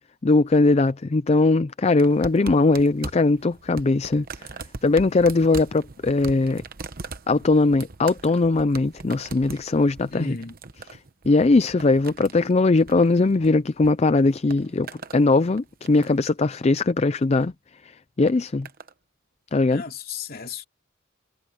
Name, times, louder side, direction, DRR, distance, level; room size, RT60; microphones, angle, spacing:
voice 1, 0.2-4.2 4.8-6.6 7.3-10.4 11.3-14.9 15.1-17.5 18.2-18.7 19.5-19.8, left 3 dB, 30° left, 0.4 m, -20 dB
sound 1, 2.0-13.9 14.2-15.2 15.6-16.3 17.2-17.5 18.3-18.9 19.8-19.9, right 3 dB, 45° right, 1.0 m, -40 dB
voice 2, 10.1-10.6 19.7-20.7, left 4 dB, 45° left, 2.8 m, -34 dB
head